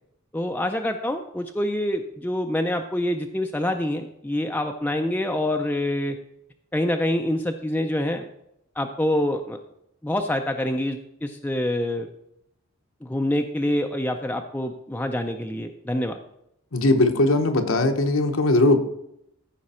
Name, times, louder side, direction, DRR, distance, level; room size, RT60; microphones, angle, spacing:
voice 1, 0.3-6.2 6.7-8.3 8.8-9.6 10.0-12.1 13.0-16.2, left 1 dB, 10° left, 3 dB, 0.5 m, -26 dB
voice 2, 16.7-18.8, left 2 dB, 75° left, 6 dB, 1.1 m, -19 dB
14.0 x 5.2 x 4.3 m, 0.79 s
head